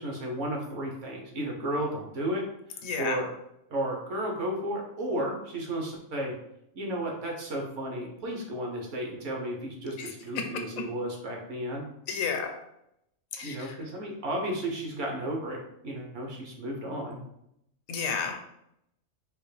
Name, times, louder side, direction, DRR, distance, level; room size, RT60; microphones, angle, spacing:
voice 1, 0.0-2.4 2.7-3.3 3.7-6.3 6.7-11.8 13.4-17.2, right 1 dB, 65° right, 0 dB, 1.0 m, -33 dB
voice 2, 2.8-3.2 10.0-10.1 12.1-12.5 13.3-13.7 17.9-18.5, left 6 dB, 80° left, 4 dB, 1.0 m, -31 dB
3.5 x 2.5 x 3.2 m, 0.79 s
omnidirectional pair, 1.5 m